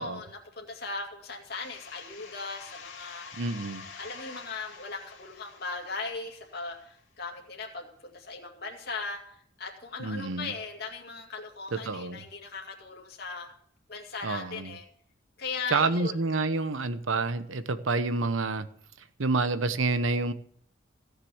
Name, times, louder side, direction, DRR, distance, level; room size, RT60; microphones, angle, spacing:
voice 1, 0.0-3.5 4.0-13.5 13.9-14.8 15.4-16.2, left 4 dB, 55° left, 0 dB, 2.3 m, -38 dB
sound 1, 1.5-7.0, left 5 dB, 75° left, 2.4 m, -47 dB
voice 2, 3.4-3.8 10.0-10.5 11.7-12.2 14.2-14.8 15.7-18.7 19.2-20.3, right 3 dB, 85° right, 12 dB, 0.9 m, -28 dB
16.5 x 6.7 x 7.2 m, 0.64 s
head